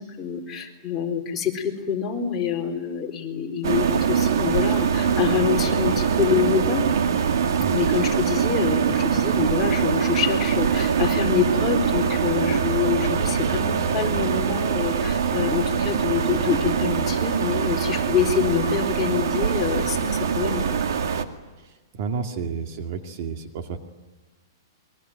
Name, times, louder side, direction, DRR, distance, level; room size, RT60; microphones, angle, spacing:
voice 1, 0.0-6.9 7.7-20.8, left 7 dB, 15° left, -1 dB, 4.2 m, -26 dB
sound 1, 3.6-21.2, right 7 dB, 75° right, 2.4 m, -23 dB
voice 2, 21.9-23.8, right 5 dB, 45° right, 6 dB, 2.3 m, -30 dB
28.0 x 23.0 x 9.2 m, 1.2 s
hypercardioid pair, 160°, 2 cm